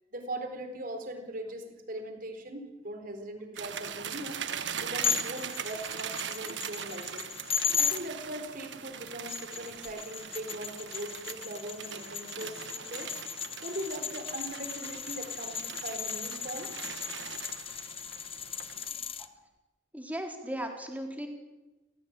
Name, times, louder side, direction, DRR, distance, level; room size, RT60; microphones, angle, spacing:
voice 1, 0.1-4.4 4.8-7.2 7.8-13.1 13.6-16.7 18.9-19.0, right 1 dB, 50° right, 6 dB, 4.3 m, -40 dB
sound 1, 3.6-18.9, right 7 dB, 75° right, 1.4 m, -41 dB
sound 2, 5.0-8.0 9.1-19.3, left 7 dB, 30° left, 1.1 m, -36 dB
voice 2, 19.9-21.3, equal, 10° right, 3 dB, 3.7 m, -36 dB
29.5 x 16.0 x 9.0 m, 1.1 s
head